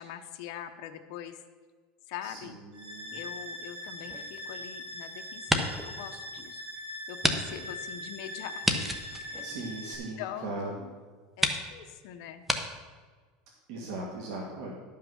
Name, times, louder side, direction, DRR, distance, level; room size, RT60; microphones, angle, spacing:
voice 1, 0.0-1.4 2.1-2.6 3.1-6.7 7.1-8.6 9.2-11.0 11.4-12.4, left 10 dB, 65° left, 6 dB, 0.8 m, -43 dB
voice 2, 2.2-3.2 9.4-10.7 13.7-14.7, right 2 dB, 65° right, -2 dB, 1.9 m, -39 dB
sound 1, 2.7-9.9, left 1 dB, 35° right, 2.2 m, -41 dB
sound 2, 4.0-5.0 5.3-5.9 6.4-6.5 7.2-7.4 7.7-7.8 8.6-10.2 10.9-11.0 11.4-11.6 12.4-12.6, equal, 5° right, 0.9 m, -30 dB
11.5 x 5.8 x 6.2 m, 1.4 s
supercardioid pair, 135°, 4 cm